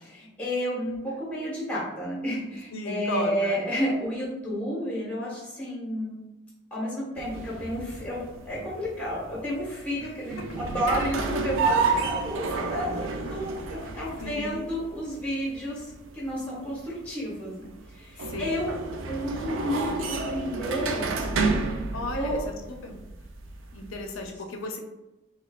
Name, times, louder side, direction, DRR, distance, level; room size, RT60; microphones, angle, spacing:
voice 1, 0.0-6.2 6.7-18.8 19.1-21.1 22.1-22.4, equal, 5° left, -6 dB, 1.1 m, -31 dB
voice 2, 2.7-3.6 10.0-10.1 14.2-14.7 18.2-18.7 21.9-22.4 22.8-23.0 23.7-24.8, left 2 dB, 85° left, 3 dB, 0.4 m, -34 dB
sound 1, 7.2-24.2, right 4 dB, 80° right, 0.4 m, -31 dB
4.2 x 2.3 x 2.3 m, 1.0 s
head